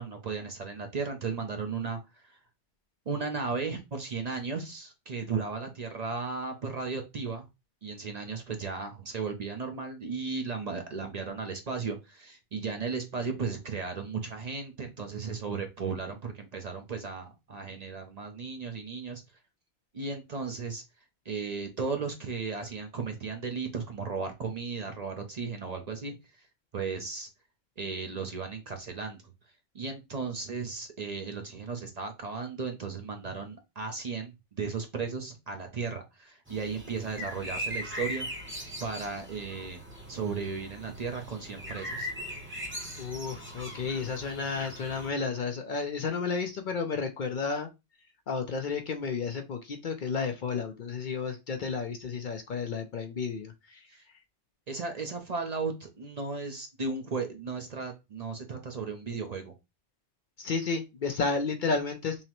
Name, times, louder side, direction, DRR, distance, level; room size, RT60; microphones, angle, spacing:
voice 1, 0.0-2.4 3.1-7.5 7.8-19.2 19.9-20.8 21.2-26.5 26.7-27.3 27.8-29.3 29.7-39.8 40.1-42.1 53.9-54.1 54.7-59.5, right 4 dB, 45° right, 0.6 m, -35 dB
sound 1, 36.5-45.1, equal, 10° right, 0.8 m, -40 dB
voice 2, 43.0-47.7 48.3-53.9 60.4-62.2, left 5 dB, 55° left, 0.6 m, -32 dB
5.5 x 2.0 x 3.0 m
omnidirectional pair, 1.1 m